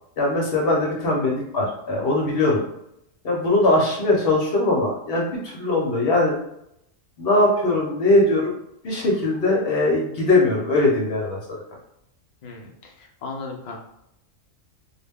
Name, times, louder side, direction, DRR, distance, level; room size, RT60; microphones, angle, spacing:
voice 1, 0.2-2.6 3.2-6.3 7.2-8.5 8.8-11.6, left 2 dB, 55° left, -2 dB, 0.7 m, -21 dB
voice 2, 12.4-13.8, left 3 dB, 80° left, -1 dB, 0.3 m, -37 dB
2.3 x 2.1 x 3.4 m, 0.78 s
omnidirectional pair, 1.4 m